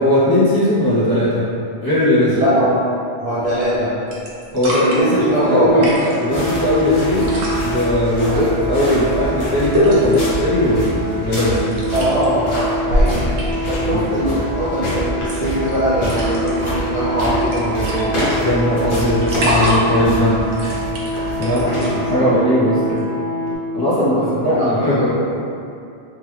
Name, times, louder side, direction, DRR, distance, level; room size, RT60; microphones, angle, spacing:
voice 1, 0.0-1.4 1.8-2.4 4.5-5.9 6.2-7.3 7.6-10.9 11.2-11.7 13.9-14.1 18.4-20.4 21.4-23.0 23.7-25.0, left 1 dB, 25° left, -12 dB, 0.6 m, -18 dB
voice 2, 2.3-2.7 3.2-3.9 4.7-5.9 8.2-8.5 11.9-13.2 13.7-18.3 21.4-22.3 23.9-25.0, right 1 dB, 50° right, -10 dB, 0.5 m, -21 dB
sound 1, 3.4-3.8 4.1-5.0 5.7-6.2 7.1-7.6 9.7-10.3 11.7-12.2 12.6-13.7 15.2-15.7 16.0-16.7 17.1-17.2 17.4-18.6 19.0-20.0 20.4-21.9 22.9-23.0, equal, 80° right, 0.9 m, -23 dB
sound 2, 5.0-23.6, equal, 20° right, 1.0 m, -26 dB
sound 3, 6.3-22.3, right 1 dB, 55° left, 1.0 m, -27 dB
3.5 x 2.2 x 3.1 m, 2.5 s
omnidirectional pair, 1.1 m